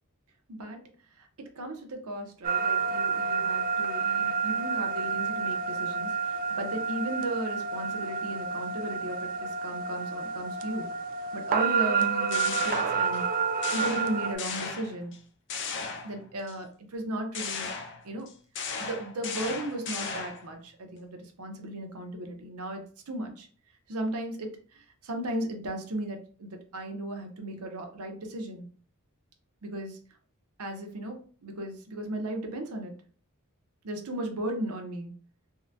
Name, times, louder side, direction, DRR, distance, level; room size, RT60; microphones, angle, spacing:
voice 1, 1.5-10.9 11.3-13.2 13.7-15.1 16.0-17.7 18.0-18.3 18.8-23.5 23.9-28.7 29.6-30.0 30.6-31.2 31.4-32.9 33.8-35.1, right 1 dB, 80° right, 4 dB, 0.7 m, -36 dB
sound 1, 2.4-14.3, right 5 dB, 40° right, 0.3 m, -29 dB
sound 2, 12.0-13.3 13.6-15.2 15.5-16.5 17.3-20.5, left 5 dB, 55° left, 0.4 m, -36 dB
3.7 x 2.2 x 2.7 m, 0.42 s
head